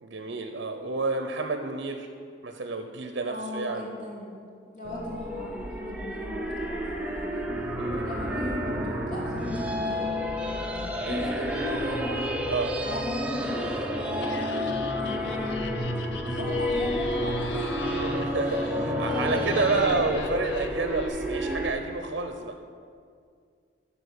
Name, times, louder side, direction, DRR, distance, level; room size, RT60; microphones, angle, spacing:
voice 1, 0.0-2.1 2.4-3.9 7.8-8.1 11.1-11.9 12.5-12.8 17.9-22.6, right 3 dB, 70° right, 6 dB, 0.6 m, -30 dB
voice 2, 3.2-4.3 4.6-7.5 7.9-10.1 11.1-12.2 12.8-15.6 16.3-17.9 18.4-18.5 19.1-20.0, left 1 dB, 40° left, -6 dB, 2.5 m, -36 dB
sound 1, 4.8-21.7, equal, 5° right, 0.7 m, -30 dB
Laughter, 14.1-21.1, left 6 dB, 65° left, 0.6 m, -43 dB
12.5 x 4.1 x 6.6 m, 2.2 s
head